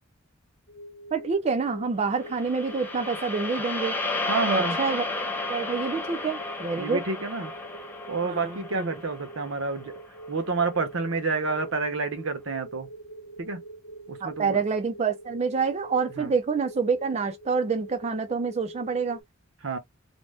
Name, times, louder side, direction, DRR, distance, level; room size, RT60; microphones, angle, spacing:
sound 1, 0.7-19.2, right 1 dB, 85° left, 0.9 m, -45 dB
voice 1, 1.1-4.0 4.5-5.0 5.5-7.0 8.2-8.9 14.2-19.2, right 5 dB, 35° right, 0.3 m, -27 dB
sound 2, 2.2-10.5, left 2 dB, 10° left, 0.7 m, -33 dB
voice 2, 4.3-4.8 6.8-7.5 8.1-9.9 10.3-12.9 13.4-13.6 14.1-14.6 16.2-16.3 19.6-19.8, right 4 dB, 80° right, 0.8 m, -29 dB
2.6 x 2.1 x 3.2 m
head